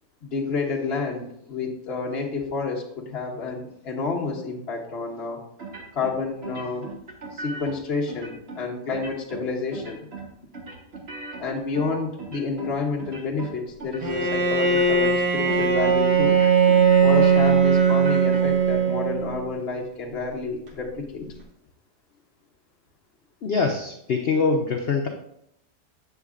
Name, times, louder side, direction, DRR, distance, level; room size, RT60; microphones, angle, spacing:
voice 1, 0.2-5.4 5.9-6.9 7.3-10.1 11.4-16.4 17.0-21.2, left 4 dB, 45° left, -1 dB, 1.2 m, -29 dB
sound 1, 5.6-6.1 6.4-7.8 8.1-8.6 8.9-9.4 9.7-10.3 10.5-12.7 13.0-13.5 13.8-14.3 14.6-15.1 15.4-16.0 16.3-18.4, right 3 dB, 40° right, 1.4 m, -37 dB
Bowed string instrument, 14.0-19.4, right 5 dB, 90° right, 1.7 m, -19 dB
voice 2, 23.4-25.1, left 4 dB, 70° left, 3 dB, 0.5 m, -23 dB
8.2 x 6.6 x 2.4 m, 0.77 s
omnidirectional pair, 1.7 m